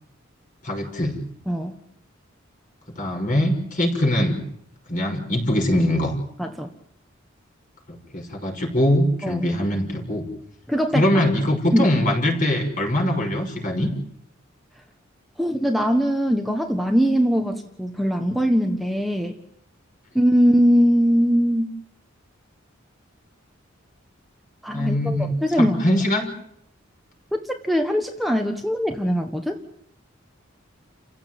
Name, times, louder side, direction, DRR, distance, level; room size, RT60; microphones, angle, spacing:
voice 1, 0.6-1.2 3.0-4.4 4.9-6.1 7.9-10.3 10.9-13.9 24.7-26.3, left 1 dB, 40° left, 3 dB, 6.0 m, -22 dB
voice 2, 6.4-6.7 9.2-9.5 10.7-11.1 11.7-11.9 15.4-19.4 20.1-21.7 24.6-25.8 27.3-29.6, equal, ahead, 3 dB, 1.4 m, -21 dB
30.0 x 16.0 x 9.3 m, 0.73 s
head